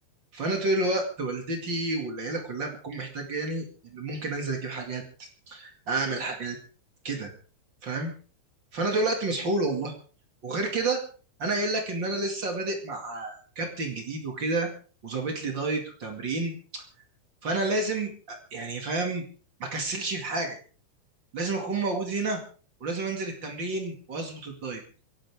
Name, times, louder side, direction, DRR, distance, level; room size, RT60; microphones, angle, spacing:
voice 1, 0.3-6.6 7.0-7.3 7.8-8.1 8.7-9.9 10.4-11.0 11.4-14.7 15.0-16.8 17.4-19.2 19.6-20.6 21.3-22.4 22.8-24.8, right 2 dB, 45° right, 2 dB, 1.6 m, -30 dB
26.5 x 11.5 x 3.6 m, 0.42 s
omnidirectional pair, 5.7 m